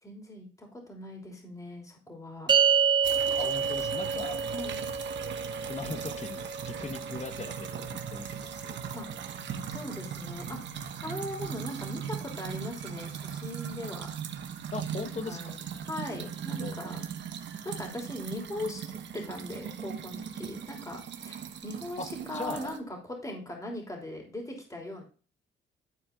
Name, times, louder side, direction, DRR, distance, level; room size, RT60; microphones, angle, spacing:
voice 1, 0.0-2.5 4.5-4.8 8.9-9.1 9.7-10.6 11.0-14.1 14.9-17.1 17.6-21.4 21.6-25.0, left 1 dB, 15° left, 1 dB, 3.1 m, -39 dB
sound 1, 2.5-9.0, right 6 dB, 25° right, 0.7 m, -29 dB
sound 2, 3.0-22.8, right 8 dB, 65° right, 1.2 m, -39 dB
voice 2, 3.4-4.4 5.7-8.9 14.7-15.5 16.5-16.8 22.0-22.1 22.3-22.7, left 4 dB, 35° left, 9 dB, 1.3 m, -39 dB
12.0 x 4.4 x 3.7 m, 0.38 s
cardioid pair, 90°, 20 cm